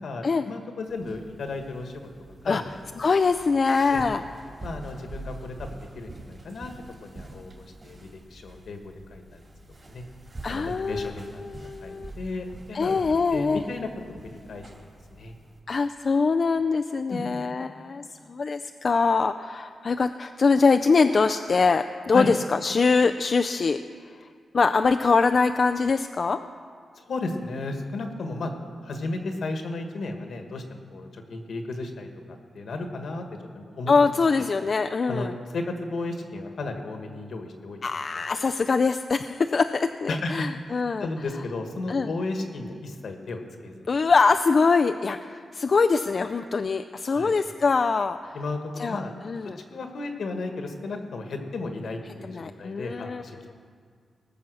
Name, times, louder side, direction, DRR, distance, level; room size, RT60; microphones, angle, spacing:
voice 1, 0.0-2.1 2.4-3.0 3.9-4.0 4.6-6.7 7.0-9.4 9.9-10.0 10.5-11.4 11.8-13.0 13.3-13.9 14.2-14.6 15.1-15.3 17.1-17.4 22.1-22.3 26.9-28.5 28.8-32.1 32.5-33.2 33.5-33.9 34.4-34.5 35.1-37.8 40.1-40.5 41.0-43.9 47.1-47.3 48.3-49.2 49.4-53.4, left 3 dB, 70° left, 4 dB, 1.5 m, -34 dB
sound 1, 0.9-15.6, right 2 dB, 35° right, 2.6 m, -45 dB
voice 2, 3.0-4.2 10.4-11.1 11.4-12.1 12.7-13.6 15.7-23.8 24.5-26.4 33.9-35.3 37.8-41.1 41.9-42.1 43.9-48.3 48.8-49.6 52.3-53.2, left 4 dB, 45° left, 7 dB, 0.3 m, -23 dB
19.5 x 7.1 x 6.3 m, 2.1 s
wide cardioid pair, 105°, 0 cm